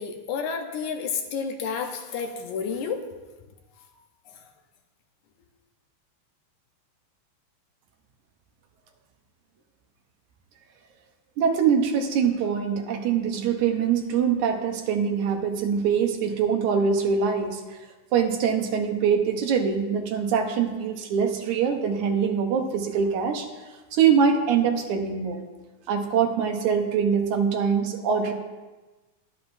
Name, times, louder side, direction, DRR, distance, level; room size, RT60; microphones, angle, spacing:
voice 1, 0.0-3.0, left 6 dB, 75° left, 4 dB, 2.3 m, -30 dB
voice 2, 11.4-17.8 18.1-23.5 23.9-25.4 25.9-28.3, right 6 dB, 75° right, 4 dB, 2.3 m, -23 dB
21.0 x 7.7 x 2.6 m, 1.2 s
omnidirectional pair, 3.6 m